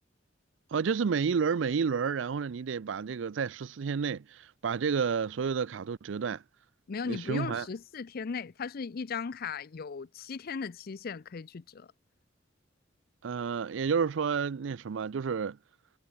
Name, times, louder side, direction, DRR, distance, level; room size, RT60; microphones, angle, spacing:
voice 1, 0.7-6.4 7.1-7.7 13.2-15.6, right 6 dB, 75° right, 0.4 m, -30 dB
voice 2, 6.9-11.9, left 5 dB, 50° left, 0.5 m, -37 dB
head